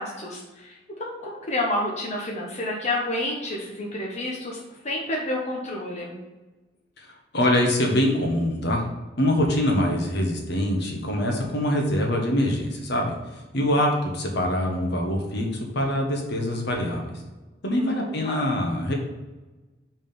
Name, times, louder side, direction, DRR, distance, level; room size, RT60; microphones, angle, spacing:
voice 1, 0.0-6.2 17.7-18.5, left 1 dB, 40° left, -2 dB, 1.1 m, -30 dB
voice 2, 7.3-8.8 9.2-13.2 13.5-17.1 17.6-18.9, left 1 dB, 65° left, 1 dB, 1.5 m, -24 dB
5.4 x 5.1 x 5.4 m, 1.2 s
head